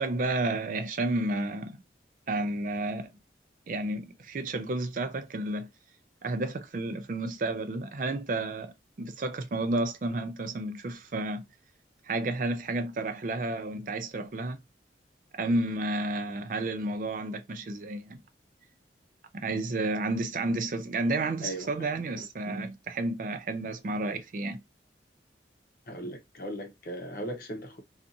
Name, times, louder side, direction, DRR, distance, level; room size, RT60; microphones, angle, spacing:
voice 1, 0.0-1.8 2.3-3.1 3.7-5.7 6.2-11.5 12.0-14.6 15.3-18.2 19.3-24.6, right 2 dB, 45° right, 0.4 m, -31 dB
voice 2, 25.9-27.8, right 1 dB, 55° left, 0.8 m, -37 dB
2.6 x 2.4 x 2.5 m
head